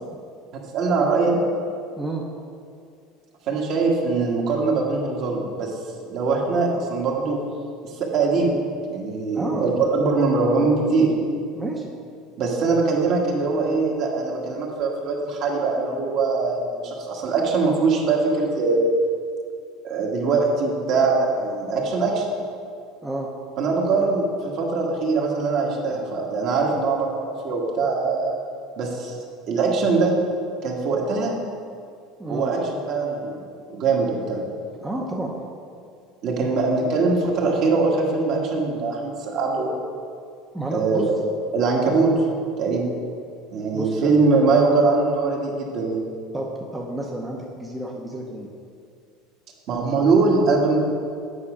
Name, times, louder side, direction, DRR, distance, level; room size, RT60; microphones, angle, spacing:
voice 1, 0.7-1.4 3.5-5.7 6.1-7.4 7.8-8.5 8.9-11.1 12.4-18.9 19.8-22.2 23.6-28.3 28.8-29.1 29.5-30.1 30.6-31.3 32.3-33.4 33.7-34.4 36.2-39.7 40.7-41.1 41.5-42.1 42.6-42.9 43.5-46.1 49.7-50.8, right 4 dB, 50° right, -1 dB, 1.5 m, -22 dB
voice 2, 9.3-9.7 11.5-11.9 23.0-23.3 32.2-32.5 34.8-35.3 40.5-41.1 43.7-44.1 46.3-48.5, right 1 dB, 10° right, -1 dB, 0.6 m, -30 dB
8.5 x 4.9 x 4.9 m, 2.3 s
supercardioid pair, 135°, 0 cm